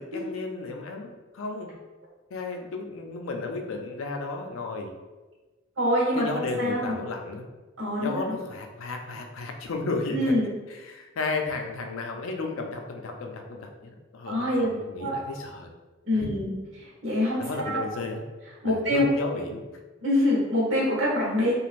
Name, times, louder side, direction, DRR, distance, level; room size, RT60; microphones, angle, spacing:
voice 1, 0.0-1.7 2.3-4.9 6.1-7.5 8.0-10.3 10.7-13.7 14.1-15.7 16.1-16.3 17.4-18.2 18.6-19.6, left 3 dB, 80° left, 3 dB, 0.4 m, -33 dB
voice 2, 5.8-6.9 7.8-8.4 10.1-10.5 14.3-14.7 15.0-15.3 16.1-16.5 17.0-17.9 18.6-19.0 20.0-21.5, left 1 dB, 70° right, -5 dB, 1.1 m, -25 dB
3.0 x 2.4 x 2.5 m, 1.2 s
head